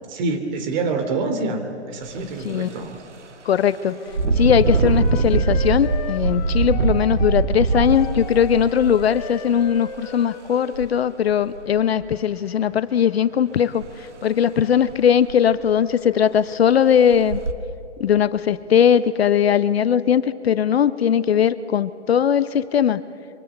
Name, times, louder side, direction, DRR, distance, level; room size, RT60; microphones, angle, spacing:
voice 1, 0.1-3.0, right 3 dB, 40° right, 6 dB, 2.9 m, -26 dB
Engine, 2.0-2.2 2.7-2.9 4.1-9.9 10.7-10.9 11.3-12.0 13.8-13.9 14.3-14.4 14.9-15.0 15.3-15.8 16.4-16.5 17.1-17.5, right 4 dB, 80° right, 1.9 m, -22 dB
voice 2, 3.4-4.0 4.4-17.4 18.0-23.0, left 8 dB, 60° left, 14 dB, 0.8 m, -19 dB
Wind instrument woodwind instrument, 3.9-11.3, left 8 dB, 35° left, 0.9 m, -37 dB
26.0 x 24.0 x 8.1 m, 2.6 s
figure-of-eight pair, 130°, 35 cm